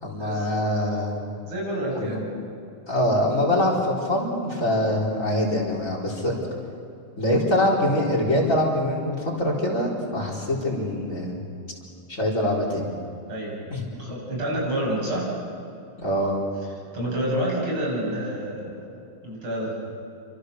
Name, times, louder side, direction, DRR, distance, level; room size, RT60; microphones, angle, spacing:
voice 1, 0.0-1.2 1.9-2.2 2.9-6.3 7.2-11.4 12.1-12.9 13.7-13.9 16.0-16.4, left 1 dB, 35° left, -1 dB, 4.7 m, -24 dB
voice 2, 1.4-2.3 13.3-13.7 14.0-15.3 16.9-18.9 19.2-19.8, right 1 dB, 85° right, -3 dB, 8.9 m, -28 dB
29.0 x 25.5 x 6.7 m, 2.6 s
omnidirectional pair, 2.3 m